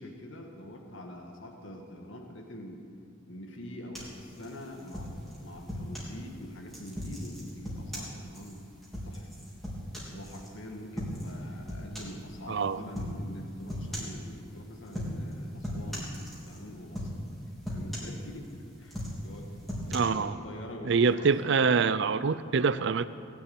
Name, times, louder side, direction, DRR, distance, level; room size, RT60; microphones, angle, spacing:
voice 1, 0.0-2.8 3.3-5.1 5.4-8.6 9.0-9.3 10.1-17.1 17.7-19.6 19.8-21.9, left 1 dB, 65° left, 2 dB, 1.7 m, -44 dB
sound 1, 3.9-6.2 6.7-10.5 11.0-11.4 11.7-12.2 12.9-13.2 13.7-14.2 14.9-15.3 15.6-16.6 16.9-17.3 17.6-18.5 18.9-20.0, equal, ahead, 3.4 m, -38 dB
voice 2, 12.5-12.8 19.9-20.3 20.9-23.1, right 5 dB, 60° right, 14 dB, 0.5 m, -25 dB
19.0 x 7.1 x 9.5 m, 2.4 s
head